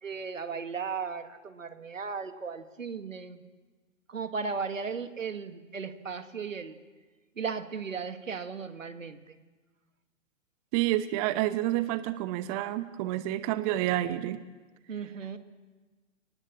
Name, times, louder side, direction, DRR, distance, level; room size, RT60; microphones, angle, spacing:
voice 1, 0.0-3.4 4.1-6.8 7.4-9.4 14.9-15.4, right 5 dB, 75° right, 9 dB, 2.1 m, -36 dB
voice 2, 10.7-14.4, right 14 dB, 30° right, 13 dB, 0.9 m, -29 dB
29.5 x 19.5 x 7.5 m, 1.3 s
figure-of-eight pair, 115°, 39 cm